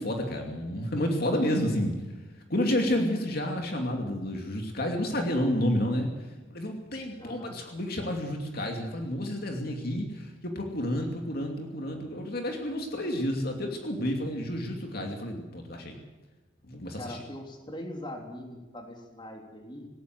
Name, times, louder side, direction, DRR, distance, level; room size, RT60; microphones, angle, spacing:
voice 1, 0.0-1.9 2.5-6.1 6.5-16.0 16.7-17.2, left 1 dB, 55° left, 2 dB, 2.7 m, -30 dB
voice 2, 7.0-7.6 17.0-19.9, left 1 dB, 25° left, 2 dB, 3.4 m, -41 dB
19.0 x 18.5 x 7.8 m, 1.2 s
head